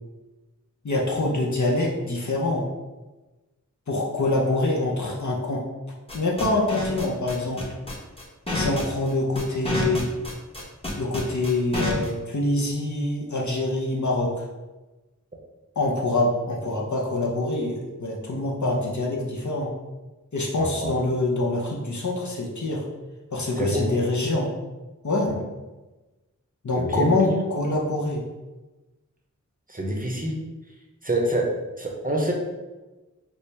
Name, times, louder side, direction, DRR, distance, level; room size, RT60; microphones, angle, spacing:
voice 1, 0.8-2.7 3.9-5.6 6.1-7.7 8.5-10.1 11.0-14.4 15.8-19.7 20.3-22.9 23.3-24.5 25.0-25.3 26.6-28.2, left 2 dB, 65° left, -1 dB, 0.7 m, -25 dB
sound 1, 6.1-12.1, left 2 dB, 20° left, 0.9 m, -29 dB
voice 2, 20.6-20.9 23.6-23.9 24.2-24.3 25.3-25.4 26.8-27.3 29.7-30.4 31.0-32.3, right 1 dB, 25° right, 0 dB, 0.7 m, -27 dB
4.2 x 2.1 x 3.3 m, 1.1 s
wide cardioid pair, 45°, 32 cm